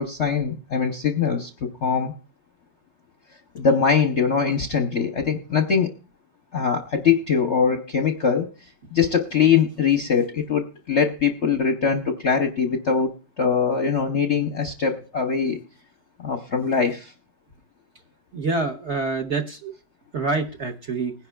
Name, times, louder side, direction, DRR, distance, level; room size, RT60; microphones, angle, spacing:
voice 1, 0.0-2.1 3.5-5.9 6.5-8.5 8.9-15.6 16.2-17.1, left 6 dB, 50° left, 4 dB, 0.8 m, -22 dB
voice 2, 18.3-19.7 20.1-21.1, right 3 dB, 45° right, 3 dB, 1.0 m, -26 dB
20.5 x 10.5 x 2.3 m, 0.35 s
omnidirectional pair, 2.1 m